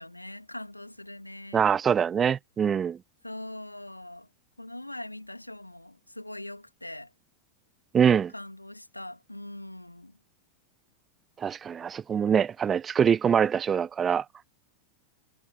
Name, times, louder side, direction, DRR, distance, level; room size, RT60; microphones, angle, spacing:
voice 1, 0.0-1.7 3.2-4.3 4.6-7.1 8.3-10.2, left 1 dB, 85° left, 2.5 m, -42 dB
voice 2, 1.5-3.0 7.9-8.3 11.4-14.2, right 7 dB, 20° right, 0.4 m, -24 dB
figure-of-eight pair, 90°, 0 cm